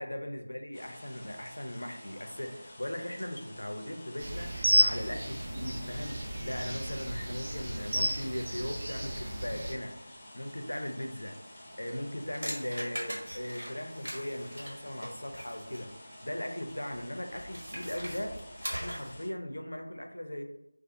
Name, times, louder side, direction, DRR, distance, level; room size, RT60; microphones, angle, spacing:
voice 1, 0.0-11.3 11.8-20.4, left 1 dB, 85° left, 5 dB, 0.4 m, -38 dB
sound 1, 0.7-19.3, left 1 dB, 15° left, 0.4 m, -50 dB
sound 2, 4.2-9.7, right 1 dB, 50° right, 0.6 m, -32 dB
sound 3, 11.9-15.9 17.3-19.2, equal, 85° right, 1.2 m, -41 dB
2.4 x 2.3 x 2.7 m, 0.87 s
figure-of-eight pair, 170°, 0 cm